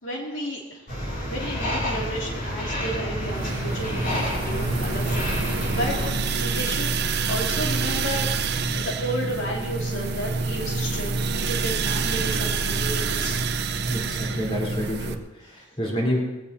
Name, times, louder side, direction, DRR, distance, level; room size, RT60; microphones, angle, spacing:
voice 1, 0.0-0.8 1.2-6.0 6.2-7.0 7.3-11.2 11.5-13.4, equal, 75° left, -2 dB, 2.5 m, -32 dB
sound 1, 0.9-6.1, equal, 50° left, 6.3 m, -29 dB
sound 2, 3.2-15.1, right 4 dB, 60° right, 0.8 m, -27 dB
voice 2, 13.9-16.4, equal, 30° left, -3 dB, 4.0 m, -29 dB
21.0 x 17.0 x 2.8 m, 1.0 s
head